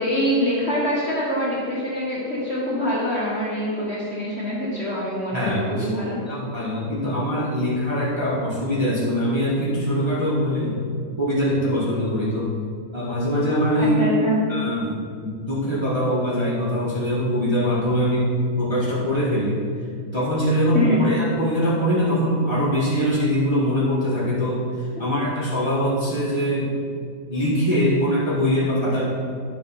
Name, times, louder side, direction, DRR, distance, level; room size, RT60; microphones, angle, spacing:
voice 1, 0.0-6.2 13.8-14.4 20.7-21.0, equal, 35° left, -7 dB, 1.6 m, -24 dB
voice 2, 5.3-5.9 6.3-10.8 11.2-12.5 12.9-14.0 14.5-18.3 18.6-19.6 20.1-26.7 27.3-29.1, equal, 15° right, -8 dB, 1.5 m, -23 dB
10.5 x 3.9 x 5.6 m, 2.2 s
omnidirectional pair, 2.2 m